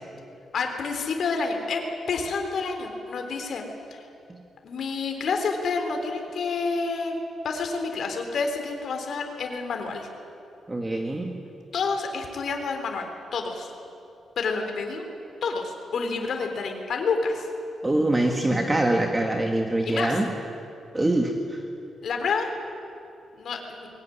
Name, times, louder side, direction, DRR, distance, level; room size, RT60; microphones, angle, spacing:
voice 1, 0.5-3.6 3.9-4.0 4.6-7.2 7.4-10.1 11.7-13.7 14.4-15.0 15.4-17.5 19.8-20.1 22.0-22.5 23.3-23.9, left 4 dB, 60° left, 4 dB, 3.6 m, -29 dB
voice 2, 10.7-11.4 17.8-20.3 20.9-21.6, right 1 dB, 15° right, 2 dB, 1.8 m, -24 dB
22.0 x 18.0 x 9.8 m, 2.6 s
cardioid pair, 115°, 0 cm